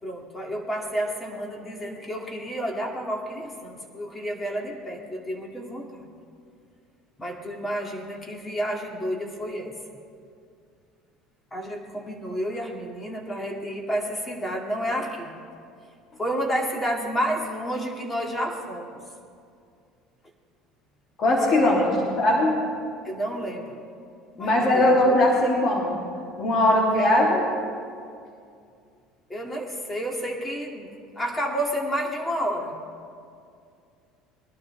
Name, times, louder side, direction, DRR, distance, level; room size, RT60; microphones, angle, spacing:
voice 1, 0.0-6.1 7.2-9.7 11.5-15.3 16.2-19.0 21.6-22.0 23.0-23.8 24.3-25.2 27.0-27.3 29.3-32.8, equal, 20° left, 0 dB, 2.7 m, -30 dB
voice 2, 21.2-22.6 24.4-26.0 26.4-27.4, left 1 dB, 45° left, -3 dB, 3.1 m, -20 dB
20.5 x 12.0 x 3.6 m, 2.3 s
supercardioid pair, 85°, 0 cm